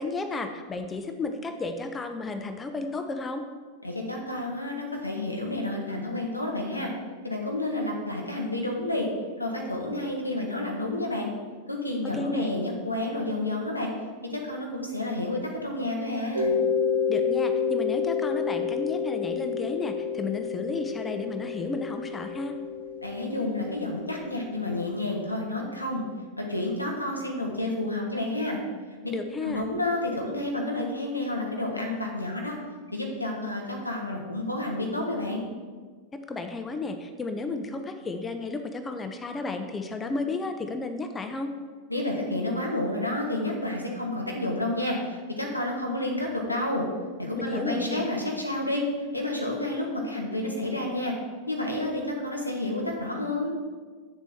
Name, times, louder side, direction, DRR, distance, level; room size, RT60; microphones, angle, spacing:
voice 1, 0.0-3.4 12.1-12.5 17.1-22.6 29.1-29.7 36.1-41.5 47.4-48.1, left 3 dB, 15° left, 7 dB, 0.7 m, -33 dB
voice 2, 3.8-6.9 7.2-9.1 9.4-11.3 11.7-13.9 14.3-16.5 23.0-26.0 26.4-28.6 29.4-32.6 32.9-35.4 41.9-46.9 47.2-48.8 49.1-51.1 51.5-53.5, left 1 dB, 85° left, 0 dB, 1.6 m, -30 dB
Mallet percussion, 16.3-24.9, left 6 dB, 70° right, 1.2 m, -29 dB
8.9 x 6.9 x 4.5 m, 1.5 s
figure-of-eight pair, 90°, 0 cm